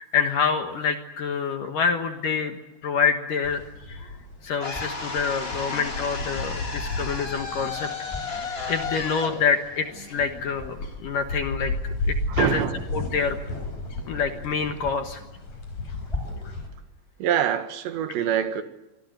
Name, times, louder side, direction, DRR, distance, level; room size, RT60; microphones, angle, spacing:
voice 1, 0.0-2.6 2.8-3.6 3.9-4.1 4.4-7.9 8.4-11.7 12.1-12.6 12.9-13.4 14.1-15.2, left 6 dB, 65° left, 2.3 m, -26 dB
sound 1, 3.4-16.7, left 2 dB, 40° left, 5.9 m, -34 dB
sound 2, 4.6-10.7, left 4 dB, 90° left, 0.5 m, -34 dB
sound 3, 4.7-5.0 8.0-8.3 10.5-10.9 12.4-12.6 13.4-13.8 14.1-14.2 14.8-15.2 16.0-16.5, left 2 dB, 5° left, 5.2 m, -37 dB
voice 2, 12.3-12.8 17.2-18.6, right 9 dB, 70° right, 3.8 m, -25 dB
26.0 x 21.0 x 8.1 m
omnidirectional pair, 5.3 m